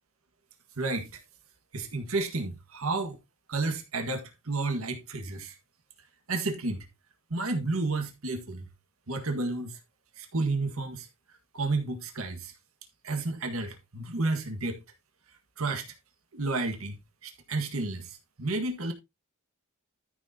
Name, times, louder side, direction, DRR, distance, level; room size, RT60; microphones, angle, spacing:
voice 1, 0.8-1.2 1.7-3.2 3.5-5.5 6.3-6.8 7.3-8.7 9.1-9.8 10.2-11.1 11.5-12.5 13.0-14.8 15.6-15.9 16.3-17.0 17.2-18.9, right 3 dB, 75° right, 1.7 m, -31 dB
13.5 x 6.4 x 2.8 m
head